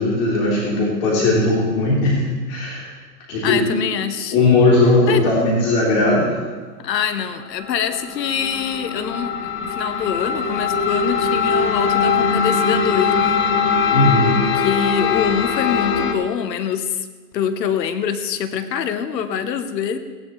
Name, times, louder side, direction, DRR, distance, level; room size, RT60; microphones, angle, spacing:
voice 1, 0.0-2.9 3.3-3.6 4.3-6.4 13.9-14.4, left 2 dB, 50° left, -5 dB, 3.7 m, -18 dB
voice 2, 3.4-4.3 5.1-5.5 6.8-13.4 14.5-17.1 17.3-20.0, left 8 dB, 85° left, 10 dB, 1.1 m, -24 dB
sound 1, 7.6-16.1, left 6 dB, 25° left, 0.9 m, -21 dB
17.5 x 10.5 x 3.2 m, 1.4 s
hypercardioid pair, 135°, 49 cm